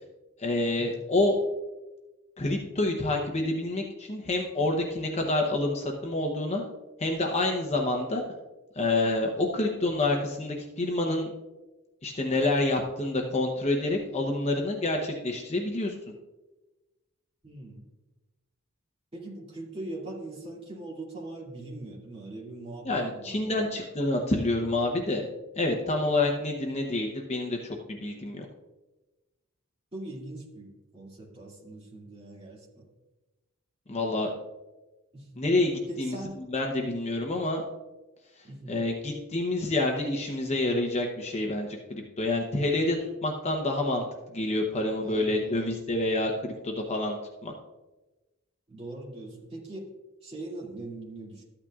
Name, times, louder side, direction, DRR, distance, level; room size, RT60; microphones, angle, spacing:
voice 1, 0.4-1.4 2.4-6.6 7.0-8.2 8.8-11.3 12.0-15.9 22.8-25.3 25.6-28.5 33.9-34.3 35.4-36.2 36.5-37.6 38.7-44.0 44.3-47.5, left 2 dB, 30° left, 1 dB, 0.8 m, -28 dB
voice 2, 17.4-17.8 19.1-23.8 29.9-32.9 35.1-35.3 35.9-36.5 38.4-38.8 45.0-45.8 48.7-49.9 50.2-51.4, right 2 dB, 30° right, -3 dB, 2.3 m, -41 dB
13.5 x 8.7 x 2.4 m, 1.1 s
head